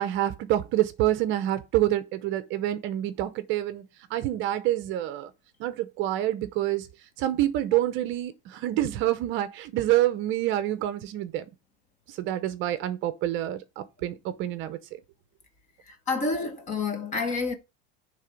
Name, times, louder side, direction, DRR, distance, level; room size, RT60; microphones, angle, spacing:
voice 1, 0.0-5.3 5.6-6.9 7.2-11.5 12.1-14.8, right 13 dB, 40° right, 0.7 m, -27 dB
voice 2, 15.9-17.5, left 3 dB, 25° left, 1.1 m, -29 dB
9.7 x 3.4 x 5.1 m
supercardioid pair, 160°, 30 cm